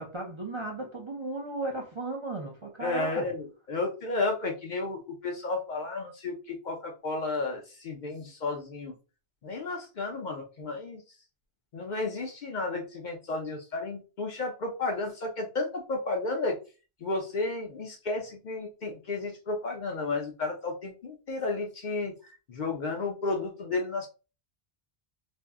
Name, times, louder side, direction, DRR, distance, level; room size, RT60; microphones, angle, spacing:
voice 1, 0.0-3.3, right 2 dB, 35° right, 0.5 m, -35 dB
voice 2, 2.8-8.9 9.4-11.0 11.7-16.6 17.0-22.1 22.5-24.1, left 3 dB, 55° left, 0.6 m, -32 dB
2.5 x 2.0 x 3.4 m
omnidirectional pair, 1.1 m